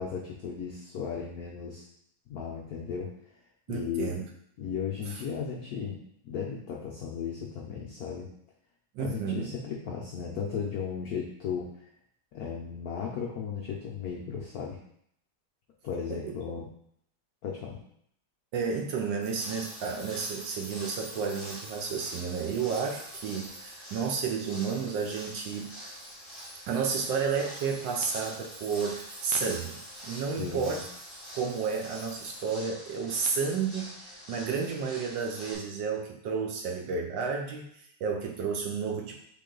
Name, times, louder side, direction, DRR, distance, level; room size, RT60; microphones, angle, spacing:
voice 1, 0.0-1.8 2.3-3.1 3.7-4.3 4.6-6.0 6.2-8.3 9.0-11.7 12.3-14.8 15.8-16.7 17.4-17.8 30.4-30.8, left 7 dB, 85° left, -1 dB, 0.8 m, -35 dB
voice 2, 3.7-4.2 5.1-5.2 8.9-9.5 16.1-16.6 18.5-25.7 26.7-30.8 31.3-39.2, right 5 dB, 75° right, 1 dB, 1.1 m, -32 dB
sound 1, 19.2-35.5, equal, 20° left, 1.0 m, -45 dB
sound 2, 19.2-32.5, right 1 dB, 40° right, 0.7 m, -51 dB
3.8 x 3.8 x 3.7 m, 0.70 s
omnidirectional pair, 2.3 m